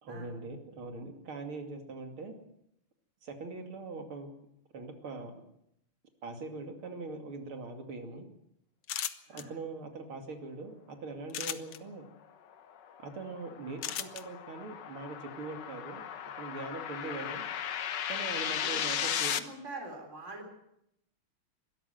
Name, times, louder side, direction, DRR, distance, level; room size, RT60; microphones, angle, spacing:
voice 1, 0.0-2.3 3.2-4.3 4.7-5.4 6.2-8.3 9.3-12.1 13.0-16.0 16.4-17.4 18.1-19.3, right 3 dB, 75° right, 5 dB, 3.5 m, -42 dB
sound 1, 8.8-9.4 11.3-11.8 13.8-14.2, left 11 dB, 80° left, 1.8 m, -35 dB
sound 2, 12.5-19.4, left 9 dB, 60° left, 1.5 m, -36 dB
voice 2, 18.6-20.5, right 2 dB, 30° right, 2 dB, 4.1 m, -45 dB
21.5 x 13.0 x 9.2 m, 0.79 s
omnidirectional pair, 2.4 m